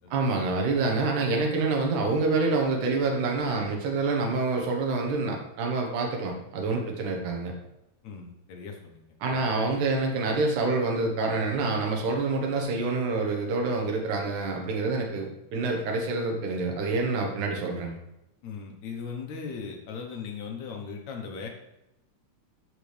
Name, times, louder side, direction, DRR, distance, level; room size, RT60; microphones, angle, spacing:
voice 1, 0.1-7.5 9.2-17.9, right 3 dB, 80° right, 1 dB, 2.8 m, -27 dB
voice 2, 8.0-9.0 18.4-21.5, left 5 dB, 70° left, 2 dB, 2.4 m, -38 dB
12.5 x 4.9 x 3.4 m, 0.88 s
omnidirectional pair, 3.5 m